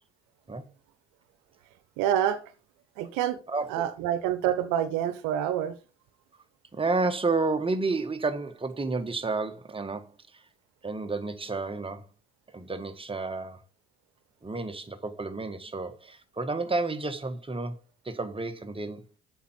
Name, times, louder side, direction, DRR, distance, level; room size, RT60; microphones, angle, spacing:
voice 1, 2.0-2.5 3.0-3.4 3.7-5.8, right 10 dB, 65° right, 1.1 m, -27 dB
voice 2, 3.5-3.8 6.7-10.4 10.8-12.1 12.5-13.6 14.4-17.8 18.0-19.1, right 3 dB, 15° right, 1.6 m, -31 dB
8.3 x 5.7 x 5.8 m
hypercardioid pair, 55°, 33 cm